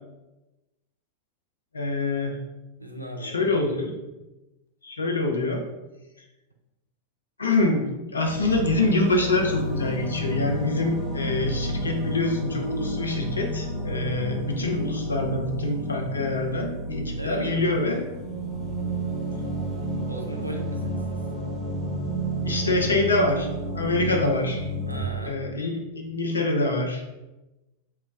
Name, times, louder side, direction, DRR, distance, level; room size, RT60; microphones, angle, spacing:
voice 1, 1.7-2.4 3.2-3.9 4.8-5.6 7.4-18.0 22.4-23.5 23.7-24.7 25.3-27.1, left 2 dB, 75° left, 2 dB, 0.4 m, -25 dB
voice 2, 2.8-3.4 17.2-17.8 20.1-21.2 24.9-25.4, right 1 dB, 85° right, 2 dB, 0.4 m, -37 dB
sound 1, 8.2-25.0, right 1 dB, 15° right, 0.9 m, -31 dB
2.1 x 2.0 x 3.3 m, 1.0 s
figure-of-eight pair, 90°, 0 cm